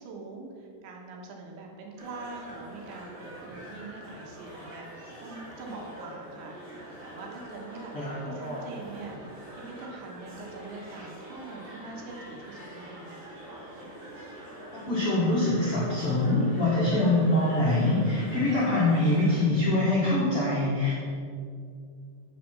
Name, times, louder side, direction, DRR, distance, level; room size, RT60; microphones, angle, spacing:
voice 1, 0.0-9.2 9.5-13.3, right 3 dB, 75° right, 0 dB, 3.5 m, -43 dB
Walk From Nanjing Road East To Peoples Square, 2.0-19.4, right 1 dB, 35° right, 2.6 m, -45 dB
voice 2, 7.9-8.6 14.9-20.9, left 2 dB, 55° left, -9 dB, 1.5 m, -24 dB
8.4 x 7.0 x 6.0 m, 2.3 s
omnidirectional pair, 5.4 m